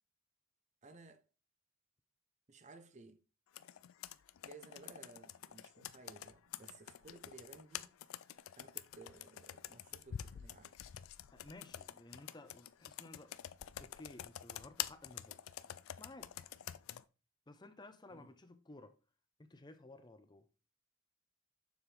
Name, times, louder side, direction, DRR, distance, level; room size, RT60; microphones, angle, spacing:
voice 1, 0.8-1.2 2.5-3.2 4.4-7.9 8.6-10.7 18.1-18.3, right 3 dB, 35° right, 0.6 m, -57 dB
Computer keyboard, 3.5-17.0, left 11 dB, 85° left, 0.4 m, -48 dB
voice 2, 11.3-13.3 13.8-15.4 16.0-16.3 17.5-19.0 19.4-20.5, left 2 dB, 20° left, 0.6 m, -55 dB
7.1 x 5.8 x 3.3 m
head